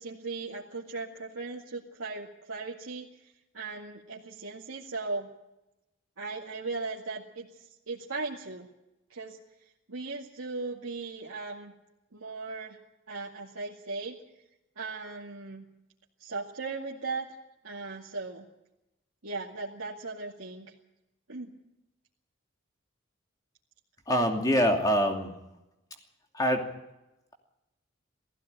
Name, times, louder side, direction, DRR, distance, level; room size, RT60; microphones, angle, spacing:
voice 1, 0.0-3.1 3.5-5.3 6.2-8.7 9.1-9.4 9.9-11.7 12.1-12.8 13.1-14.2 14.8-15.6 16.2-17.3 17.6-18.5 19.2-20.7 21.3-21.5, right 3 dB, 90° right, -4 dB, 2.3 m, -37 dB
voice 2, 24.1-25.3 26.3-26.7, equal, 15° left, 3 dB, 2.7 m, -25 dB
18.5 x 16.0 x 9.1 m, 0.94 s
head